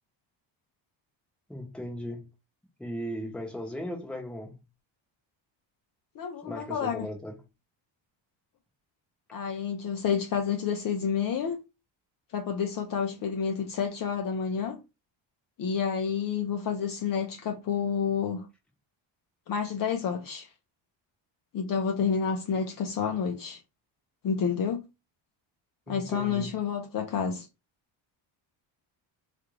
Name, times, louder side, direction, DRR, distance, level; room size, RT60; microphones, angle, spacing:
voice 1, 1.5-2.3 2.8-4.6 6.4-7.4 25.9-26.5, equal, ahead, 0.8 m, -37 dB
voice 2, 6.2-7.1 9.3-11.6 12.3-14.8 15.6-18.5 19.5-20.5 21.5-23.6 24.2-24.8 25.9-27.5, left 6 dB, 45° left, 0.5 m, -29 dB
3.5 x 2.5 x 3.1 m
cardioid pair, 160°, 47 cm